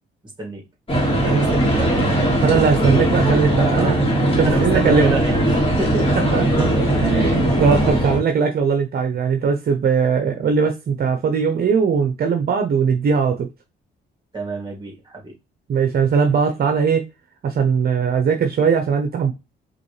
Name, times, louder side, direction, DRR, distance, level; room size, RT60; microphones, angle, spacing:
sound 1, 0.9-8.2, right 1 dB, 30° left, 2.0 m, -19 dB
voice 1, 1.1-2.2 3.6-4.0 4.4-7.0 7.4-7.7 8.0-8.2 14.3-15.3, right 2 dB, 20° right, 2.4 m, -30 dB
voice 2, 2.4-3.9 4.4-5.1 6.3-6.4 7.0-13.5 15.7-17.0 17.4-19.3, right 6 dB, 50° right, 0.8 m, -19 dB
5.1 x 3.1 x 3.2 m
cardioid pair, 90°, 20 cm